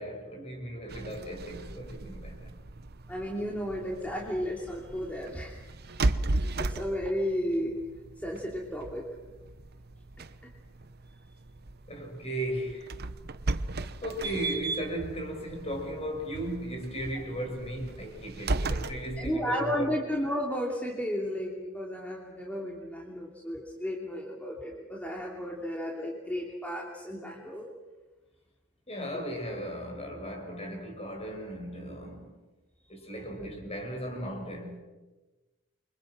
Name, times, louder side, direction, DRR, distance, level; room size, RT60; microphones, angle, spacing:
voice 1, 0.0-2.5 11.9-12.9 14.0-20.0 28.9-32.3 32.9-34.8, right 1 dB, 30° left, 5.8 m, -36 dB
sound 1, 0.9-19.4, right 2 dB, 50° right, 1.0 m, -36 dB
voice 2, 3.1-5.6 6.3-7.7 8.2-9.0 19.2-27.7 33.4-33.5, equal, 5° left, 3.0 m, -33 dB
29.0 x 25.0 x 6.2 m
head